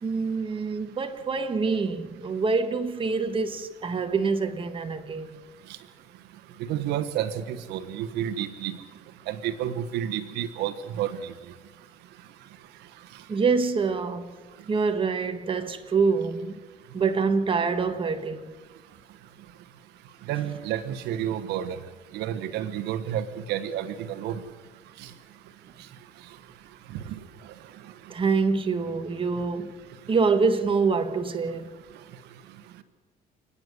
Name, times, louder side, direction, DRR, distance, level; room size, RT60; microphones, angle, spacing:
voice 1, 0.0-5.4 13.3-14.3 14.7-16.5 16.9-18.5 28.1-29.7 30.1-31.7, right 4 dB, 30° right, 1.7 m, -25 dB
voice 2, 6.6-8.8 9.3-11.3 13.1-13.2 20.3-21.8 22.1-24.4 25.0-25.1 26.9-27.2, right 10 dB, 90° right, 1.2 m, -30 dB
29.0 x 9.8 x 9.6 m
cardioid pair, 110°, 17 cm